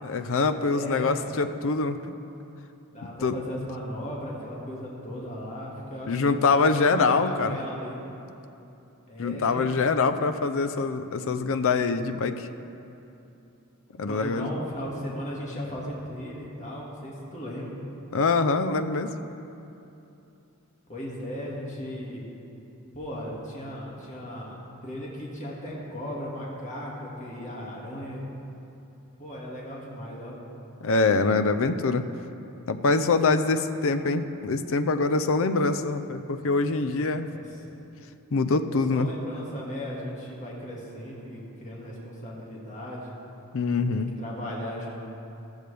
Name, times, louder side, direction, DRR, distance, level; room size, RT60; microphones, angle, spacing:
voice 1, 0.0-2.0 3.2-3.3 6.1-7.6 9.2-12.5 14.0-14.5 18.1-19.1 30.8-32.0 32.7-37.3 38.3-39.1 43.5-44.1, left 4 dB, 65° left, 10 dB, 0.6 m, -24 dB
voice 2, 0.6-1.3 2.9-8.0 9.1-9.6 14.0-17.8 20.9-22.2 22.9-24.6 24.8-28.2 29.2-30.4 37.3-37.6 38.7-43.1 43.9-44.9, equal, 35° left, -4 dB, 2.1 m, -37 dB
14.5 x 14.0 x 3.4 m, 2.8 s
head